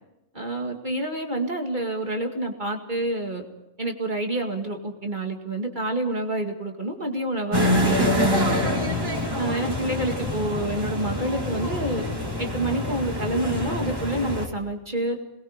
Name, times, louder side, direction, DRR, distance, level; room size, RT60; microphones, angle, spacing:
voice 1, 0.3-3.4 3.8-8.7 9.4-12.1 12.4-15.2, right 1 dB, 40° right, 2 dB, 2.4 m, -28 dB
sound 1, 7.5-14.5, left 1 dB, 20° right, 3.5 m, -26 dB
27.5 x 21.0 x 5.1 m, 0.91 s
omnidirectional pair, 1.3 m